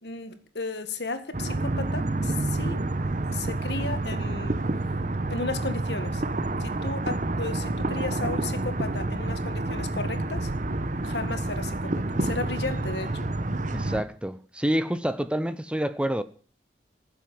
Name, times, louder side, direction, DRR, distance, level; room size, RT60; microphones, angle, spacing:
voice 1, 0.0-2.8 3.3-4.6 5.3-6.2 6.6-10.5 11.0-13.3, left 3 dB, 70° left, 1.7 m, -34 dB
sound 1, 1.3-14.0, right 2 dB, 45° right, 1.0 m, -28 dB
voice 2, 13.7-16.2, equal, 5° right, 0.6 m, -28 dB
15.5 x 7.6 x 8.8 m
head